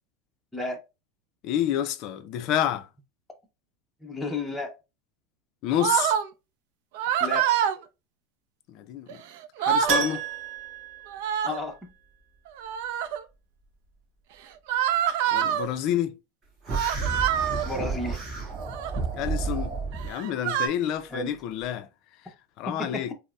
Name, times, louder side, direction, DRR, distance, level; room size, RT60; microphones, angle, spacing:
voice 1, 1.4-2.9 5.6-6.1 8.7-9.2 9.6-10.2 15.3-16.2 19.1-19.8 20.0-21.9 22.2-23.1, left 11 dB, 45° left, 0.4 m, -29 dB
voice 2, 4.0-4.7 7.2-7.5 11.4-11.8 17.6-18.2 21.1-21.3 22.7-23.1, left 2 dB, 5° left, 0.7 m, -32 dB
sound 1, 5.8-6.3 6.9-7.8 9.1-9.2 9.4-10.0 11.1-11.7 12.6-13.2 14.7-15.7 16.7-17.7 18.6-19.0 19.9-20.7, right 9 dB, 65° right, 0.4 m, -26 dB
Keyboard (musical), 9.9-11.9 12.2-12.3 15.0-15.1 15.3-15.4, right 6 dB, 45° right, 1.0 m, -31 dB
sound 2, 16.7-20.1, right 4 dB, 25° right, 1.3 m, -31 dB
5.2 x 2.1 x 2.3 m
supercardioid pair, 160°, 0 cm